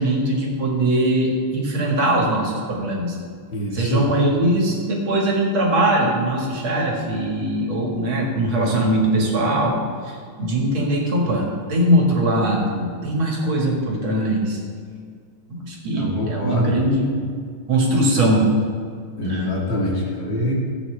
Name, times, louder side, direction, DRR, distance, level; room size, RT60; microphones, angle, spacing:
voice 1, 0.0-3.2 3.7-9.7 10.0-14.6 15.5-17.1 17.7-18.5 19.2-19.5, right 1 dB, 70° right, -2 dB, 2.5 m, -21 dB
voice 2, 3.5-4.1 15.9-16.8 19.2-20.5, equal, 60° left, -4 dB, 2.6 m, -24 dB
15.0 x 8.0 x 3.3 m, 2.1 s
omnidirectional pair, 2.4 m